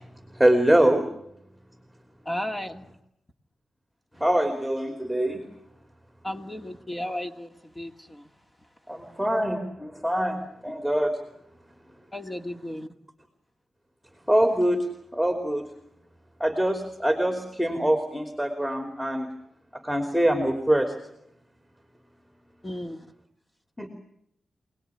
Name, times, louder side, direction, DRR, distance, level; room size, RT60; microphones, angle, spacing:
voice 1, 0.3-1.1 4.2-5.4 8.9-11.2 14.3-14.9 15.1-15.6 16.4-19.3 19.7-20.9 23.8-23.9, right 1 dB, ahead, 5 dB, 3.1 m, -24 dB
voice 2, 2.3-2.9 6.2-8.3 12.1-12.9 22.6-23.1, left 1 dB, 20° left, 6 dB, 2.2 m, -34 dB
27.0 x 19.5 x 9.8 m, 0.77 s
cardioid pair, 85°, 0 cm